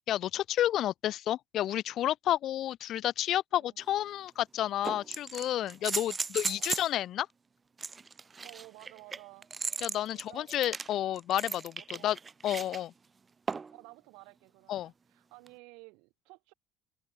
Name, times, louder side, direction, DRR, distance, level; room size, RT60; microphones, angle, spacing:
voice 1, 0.1-7.3 9.8-12.2 12.4-12.9 14.7-14.9, left 12 dB, 55° left, 0.9 m, -31 dB
sound 1, 3.8-3.9 4.8-6.9 7.8-12.8 13.5-13.8 15.5-15.6, right 5 dB, 30° right, 0.7 m, -36 dB
voice 2, 5.8-6.2 6.4-6.8 8.4-9.5 10.1-10.6 11.9-12.2 13.7-16.5, right 28 dB, 70° right, 6.7 m, -54 dB
hypercardioid pair, 65°, 0 cm